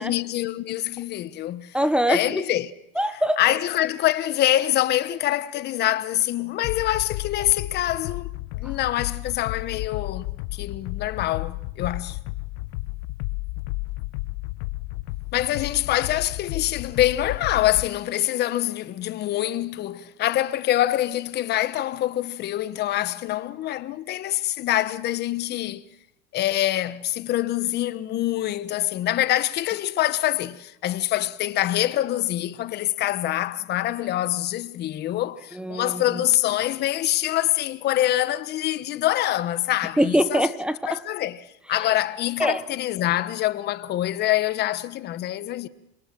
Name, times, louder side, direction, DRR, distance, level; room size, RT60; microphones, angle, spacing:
voice 1, 0.0-1.8 2.1-2.7 3.4-10.3 10.5-12.2 15.3-25.8 26.3-40.5 40.9-45.7, left 14 dB, 35° left, 1.2 m, -25 dB
voice 2, 1.7-2.4 3.0-3.4 35.5-36.2 40.0-41.0 42.4-42.6, equal, 5° right, 0.9 m, -23 dB
sound 1, 6.6-17.9, left 19 dB, 55° left, 1.3 m, -33 dB
27.5 x 22.5 x 7.6 m
supercardioid pair, 140°, 30 cm